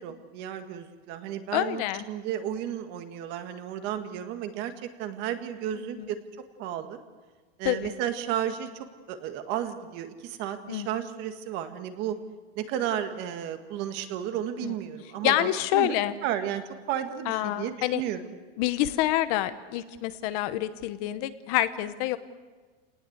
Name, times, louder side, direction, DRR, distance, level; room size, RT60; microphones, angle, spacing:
voice 1, 0.0-6.2 6.6-7.0 7.6-8.7 9.1-12.2 12.6-16.0 16.2-18.3, right 10 dB, 35° right, 8 dB, 1.8 m, -33 dB
voice 2, 1.5-2.0 5.8-6.1 7.6-7.9 10.7-10.9 14.6-14.7 15.2-16.1 17.3-18.0 18.6-22.2, left 14 dB, 40° left, 12 dB, 0.9 m, -27 dB
28.5 x 19.0 x 8.1 m, 1.4 s
supercardioid pair, 165°, 30 cm